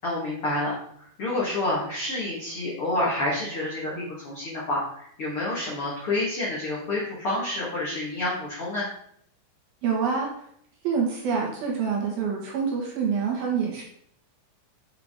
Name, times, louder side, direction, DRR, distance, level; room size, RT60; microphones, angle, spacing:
voice 1, 0.0-0.8 1.2-8.9, left 2 dB, 75° left, -6 dB, 1.2 m, -28 dB
voice 2, 9.8-10.3 10.8-13.8, right 6 dB, 65° right, -2 dB, 2.9 m, -26 dB
7.8 x 5.7 x 3.6 m, 0.68 s
omnidirectional pair, 5.4 m